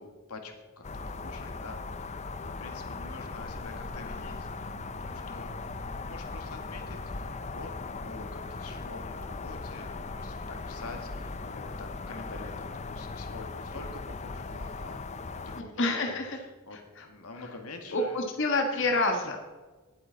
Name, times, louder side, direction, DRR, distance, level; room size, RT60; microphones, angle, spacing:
voice 1, 0.0-4.7 5.0-15.0 15.3-18.2, left 3 dB, 90° left, 5 dB, 1.8 m, -46 dB
sound 1, 0.8-15.6, left 3 dB, 30° left, 0.5 m, -38 dB
voice 2, 15.6-16.4 16.7-17.1 17.4-17.5 17.9-19.4, left 2 dB, 55° left, 3 dB, 1.4 m, -28 dB
19.0 x 8.3 x 4.0 m, 1.3 s
head